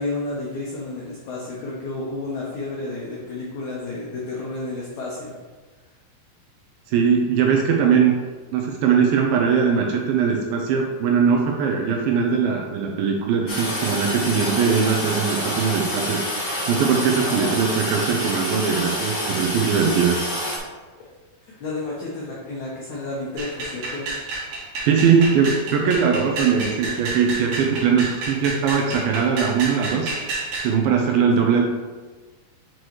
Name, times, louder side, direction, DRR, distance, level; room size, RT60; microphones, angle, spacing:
voice 1, 0.0-5.3 17.2-17.5 21.5-24.1 31.4-31.5, left 2 dB, 90° left, -4 dB, 1.6 m, -31 dB
voice 2, 6.9-8.1 8.5-16.2 16.7-20.2 24.9-30.1 30.6-31.7, right 6 dB, 80° right, 1 dB, 2.2 m, -20 dB
Toilet flush, 13.5-20.6, equal, 50° left, 1.8 m, -27 dB
sound 1, 23.4-30.7, right 3 dB, 65° right, 2.8 m, -30 dB
7.7 x 4.6 x 3.0 m, 1.4 s
omnidirectional pair, 4.6 m